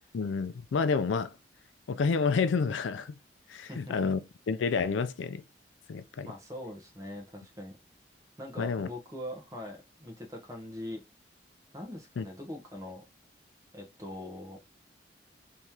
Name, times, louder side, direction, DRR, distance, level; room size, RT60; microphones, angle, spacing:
voice 1, 0.1-1.3 1.9-3.1 3.5-4.2 4.5-5.4 5.9-6.3 8.6-8.9 12.2-12.3, left 5 dB, 85° left, 0.4 m, -29 dB
voice 2, 3.6-3.9 6.2-7.7 8.4-11.0 11.7-13.0 13.7-14.6, left 1 dB, 20° right, 0.8 m, -42 dB
3.0 x 2.9 x 3.5 m
head